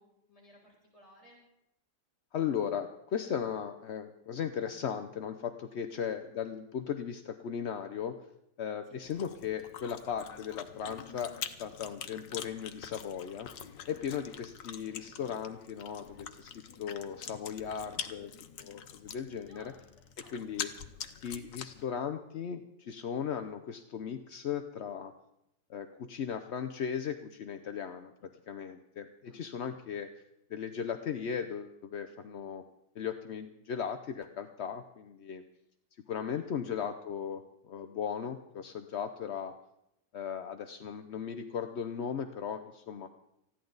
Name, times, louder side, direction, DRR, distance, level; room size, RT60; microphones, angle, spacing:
voice 1, 0.0-1.4 5.9-6.0 8.8-9.0 19.5-20.4 29.2-29.5 36.1-36.2, equal, 20° left, -4 dB, 5.1 m, -59 dB
voice 2, 2.3-8.1 8.6-13.5 13.9-16.5 16.8-18.3 18.6-19.7 20.3-20.7 21.2-25.1 25.7-30.1 30.5-32.6 33.0-35.4 36.1-39.5 40.1-43.1, left 8 dB, 60° left, 8 dB, 0.7 m, -37 dB
Chewing mastication, 9.0-21.8, left 8 dB, 90° left, 1.6 m, -45 dB
20.0 x 15.0 x 4.0 m, 0.83 s
omnidirectional pair, 1.9 m